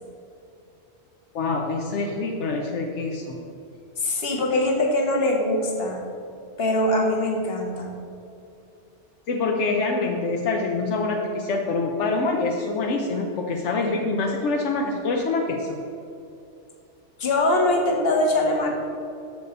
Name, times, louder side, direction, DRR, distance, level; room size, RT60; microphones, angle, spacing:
voice 1, 1.3-3.4 9.3-15.8, left 3 dB, 85° left, 1 dB, 1.0 m, -25 dB
voice 2, 4.0-6.0 6.6-7.9 17.2-18.7, left 1 dB, 60° left, 1 dB, 1.4 m, -22 dB
6.7 x 6.7 x 5.2 m, 2.6 s
omnidirectional pair, 1.2 m